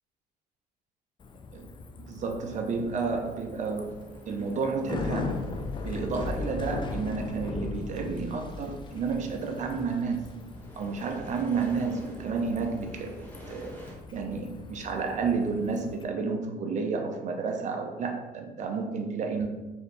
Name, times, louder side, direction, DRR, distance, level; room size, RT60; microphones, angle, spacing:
Bicycle, 1.2-16.0, left 4 dB, 30° left, 0.4 m, -39 dB
voice 1, 2.0-3.9 4.3-5.5 5.8-10.2 10.8-13.8 14.1-19.5, right 4 dB, 45° right, 4 dB, 0.7 m, -31 dB
sound 1, 2.7-14.0, equal, 10° left, 1.0 m, -50 dB
4.6 x 2.7 x 3.3 m, 1.1 s
cardioid pair, 110°, 17 cm